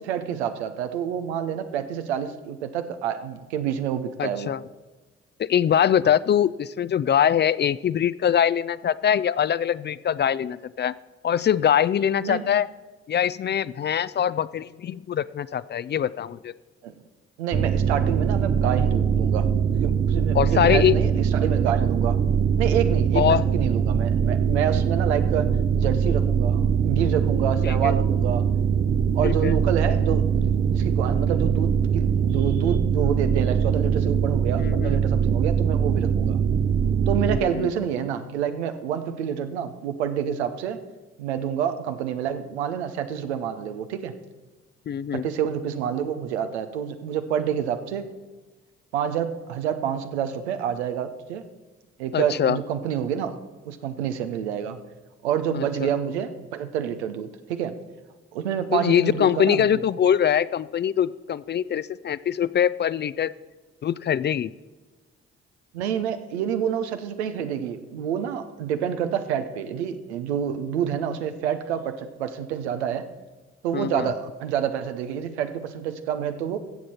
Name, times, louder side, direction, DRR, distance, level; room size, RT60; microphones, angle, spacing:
voice 1, 0.0-4.5 6.0-6.1 12.2-12.4 16.8-16.9 17.4-19.5 19.7-22.2 22.6-28.5 29.1-36.4 37.1-40.8 41.2-44.1 45.1-48.1 48.9-51.4 52.0-53.4 53.6-54.8 55.2-57.8 58.3-59.8 65.7-73.1 73.6-76.6, right 8 dB, 90° right, 9 dB, 0.7 m, -28 dB
voice 2, 4.2-4.6 5.4-10.9 11.2-12.7 13.1-16.5 20.3-21.0 23.1-23.4 27.7-27.9 29.2-29.5 34.6-35.0 37.5-37.7 44.9-45.3 52.1-52.6 55.5-55.6 58.7-63.3 63.8-64.5 73.7-74.1, left 9 dB, 35° left, 18 dB, 0.4 m, -23 dB
sound 1, 17.5-37.4, right 7 dB, 35° right, 0.7 m, -22 dB
13.5 x 7.6 x 4.3 m, 1.3 s
hypercardioid pair, 45°, 32 cm